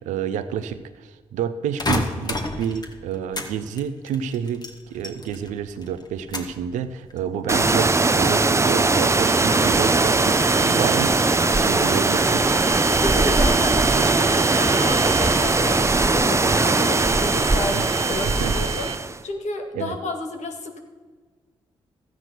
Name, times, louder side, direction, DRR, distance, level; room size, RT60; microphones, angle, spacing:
voice 1, 0.0-4.6 4.9-11.2 11.5-12.5 17.7-17.9 18.3-18.6 19.7-20.0, right 8 dB, 85° right, 11 dB, 0.8 m, -29 dB
sound 1, 1.8-3.5 3.8-5.5 5.8-6.6 7.1-7.6, left 2 dB, 35° left, 2.0 m, -29 dB
sound 2, 7.5-19.2, right 3 dB, 25° right, 0.7 m, -20 dB
sound 3, 8.9-19.0, right 7 dB, 45° right, 1.1 m, -33 dB
voice 2, 12.9-18.9 19.2-20.8, left 3 dB, 70° left, 4 dB, 2.0 m, -31 dB
13.5 x 9.4 x 6.1 m, 1.4 s
supercardioid pair, 45°, 12 cm